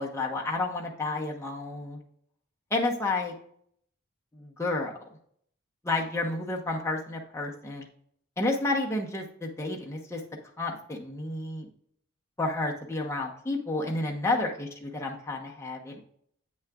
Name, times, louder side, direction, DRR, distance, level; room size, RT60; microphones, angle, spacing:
voice 1, 0.0-2.0 2.7-3.3 4.3-4.9 5.8-7.9 8.4-10.2 10.6-11.7 12.4-16.1, left 2 dB, 10° left, -1 dB, 0.9 m, -31 dB
8.1 x 6.3 x 2.4 m, 0.65 s
head